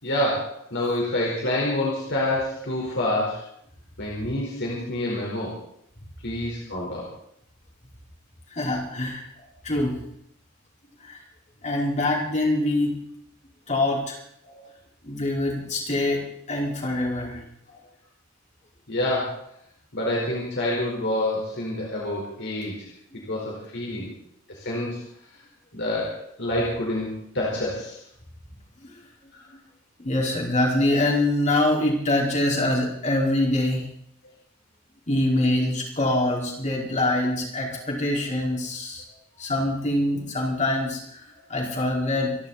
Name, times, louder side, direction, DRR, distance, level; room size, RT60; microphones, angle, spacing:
voice 1, 0.0-3.4 4.0-5.6 6.2-7.1 14.4-14.6 17.7-17.8 18.9-19.4 19.9-22.9 23.3-24.1 24.5-25.0 25.7-28.0 29.3-29.4, left 1 dB, 55° left, -4 dB, 4.6 m, -27 dB
voice 2, 8.5-9.3 9.6-10.0 11.0-11.2 11.6-13.0 13.7-14.2 15.0-17.4 23.1-23.2 24.0-24.1 28.8-28.9 30.0-33.8 35.1-39.0 39.4-42.4, left 1 dB, 35° left, -2 dB, 5.0 m, -24 dB
27.5 x 12.0 x 4.3 m, 0.70 s
head